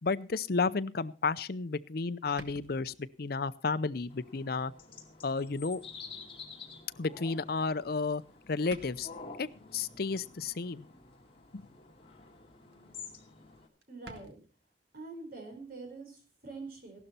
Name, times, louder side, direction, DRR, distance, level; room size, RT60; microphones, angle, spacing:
voice 1, 0.0-4.7 5.2-5.8 7.0-8.2 8.5-9.1 9.4-10.9 11.5-11.6, left 4 dB, 60° left, 14 dB, 0.6 m, -32 dB
sound 1, 2.4-3.3 3.9-4.2 4.7-4.8 6.0-6.1 7.8-8.1 8.4-8.5 8.7-9.3 11.3-11.7 12.1-12.4 12.7-12.8 13.0-13.1 13.4-13.5 13.8-14.4, right 2 dB, 70° right, 1.8 m, -52 dB
sound 2, 4.1-13.7, left 4 dB, 35° left, 2.5 m, -50 dB
voice 2, 13.9-14.4 14.9-17.0, right 3 dB, 55° right, 4 dB, 4.4 m, -45 dB
16.0 x 12.0 x 4.3 m, 0.36 s
head